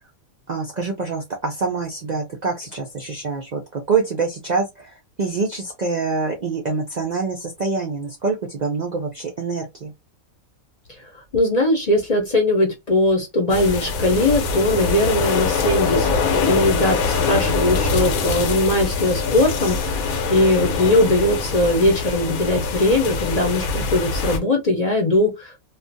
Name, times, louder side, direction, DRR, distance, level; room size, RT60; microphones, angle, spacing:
voice 1, 0.5-9.9 17.3-17.6, right 4 dB, 65° right, 0.4 m, -25 dB
voice 2, 11.3-25.5, left 1 dB, 40° left, 0.6 m, -20 dB
sound 1, 13.5-24.4, left 4 dB, 85° left, 1.1 m, -23 dB
2.4 x 2.3 x 2.6 m
omnidirectional pair, 1.4 m